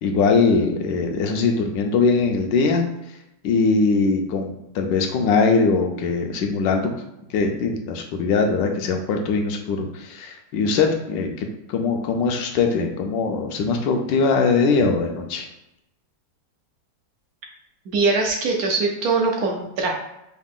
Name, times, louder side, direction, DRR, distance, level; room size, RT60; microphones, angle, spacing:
voice 1, 0.0-2.9 3.4-6.9 7.3-15.4, left 4 dB, 85° left, 4 dB, 1.3 m, -21 dB
voice 2, 17.9-19.9, right 3 dB, 65° right, 1 dB, 1.0 m, -22 dB
4.9 x 2.4 x 3.6 m, 0.87 s
omnidirectional pair, 1.9 m